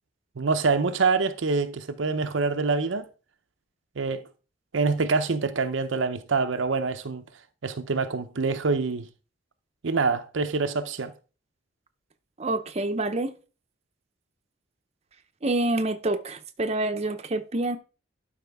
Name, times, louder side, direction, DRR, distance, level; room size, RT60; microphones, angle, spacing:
voice 1, 0.4-3.1 4.0-4.2 4.7-7.2 7.6-9.1 9.8-11.1, right 4 dB, 80° right, 0.7 m, -25 dB
voice 2, 12.4-13.3 15.4-17.8, right 2 dB, 35° right, 0.7 m, -27 dB
11.5 x 5.0 x 3.5 m
head